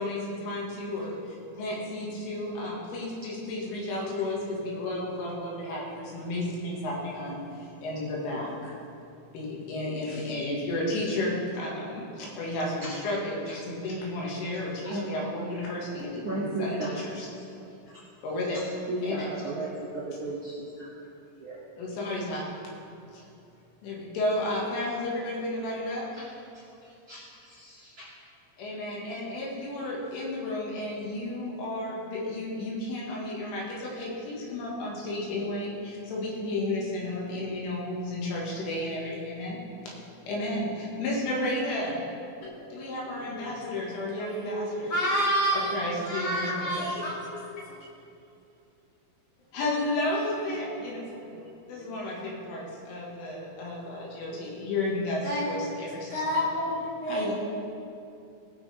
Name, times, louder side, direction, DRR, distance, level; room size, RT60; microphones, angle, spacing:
voice 1, 0.0-8.8 9.3-16.8 17.0-17.3 18.2-18.6 19.0-19.3 21.8-22.5 23.1-23.3 23.8-26.0 28.6-39.6 39.9-40.0 40.3-42.0 42.7-45.1 45.5-46.9 49.5-51.0 51.7-56.4 57.1-57.3, left 1 dB, 75° left, -4 dB, 4.2 m, -32 dB
voice 2, 12.8-13.2 14.4-14.5 14.8-15.2 15.6-15.7 16.2-17.0 17.4-18.0 18.5-21.6 26.1-26.2 27.1-28.1, right 2 dB, 50° right, -7 dB, 2.2 m, -36 dB
voice 3, 43.1-43.5 44.2-45.7 46.0-47.4 47.6-47.7 51.3-51.5 51.7-51.9 53.8-54.4 55.2-55.5 56.1-57.3, equal, 45° left, -8 dB, 2.7 m, -30 dB
19.5 x 6.8 x 3.4 m, 2.6 s
omnidirectional pair, 5.8 m